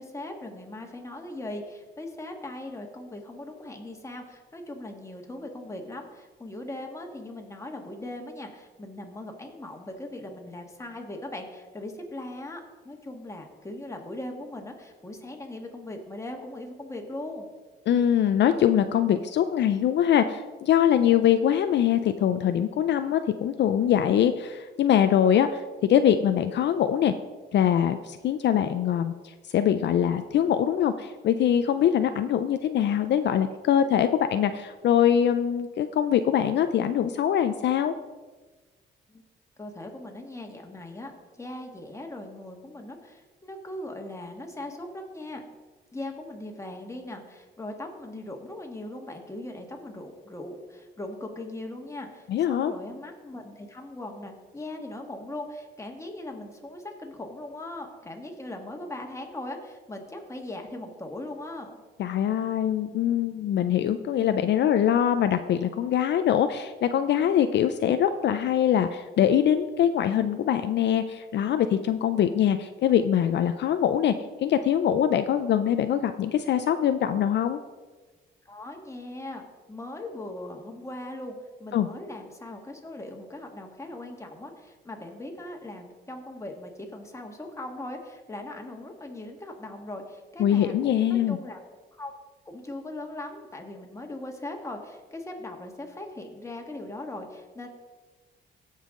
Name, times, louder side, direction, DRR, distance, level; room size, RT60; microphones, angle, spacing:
voice 1, 0.0-17.5 39.1-39.2 39.6-45.4 45.9-61.8 78.4-79.4 79.7-81.3 81.6-91.6 91.9-92.1 92.4-97.7, left 1 dB, 15° left, 2 dB, 1.7 m, -39 dB
voice 2, 17.9-25.6 25.9-27.1 27.5-37.9 52.3-52.7 62.0-74.1 74.4-77.6 81.7-81.9 90.4-91.4, left 9 dB, 60° left, 9 dB, 0.5 m, -23 dB
15.5 x 5.6 x 3.8 m, 1.3 s
cardioid pair, 90°, 20 cm